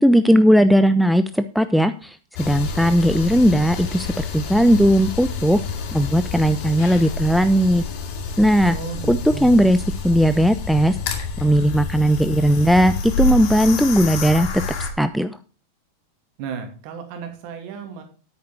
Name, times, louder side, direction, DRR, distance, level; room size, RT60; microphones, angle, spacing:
voice 1, 0.0-5.6 5.9-7.8 8.4-8.8 9.1-11.0 11.4-14.5 15.0-15.4, equal, ahead, 11 dB, 0.5 m, -17 dB
sound 1, 2.3-14.9, left 4 dB, 45° left, 2.3 m, -28 dB
voice 2, 8.7-9.6 16.4-18.0, right 6 dB, 45° right, 5 dB, 2.6 m, -33 dB
10.0 x 8.6 x 4.4 m, 0.37 s
figure-of-eight pair, 90°, 0 cm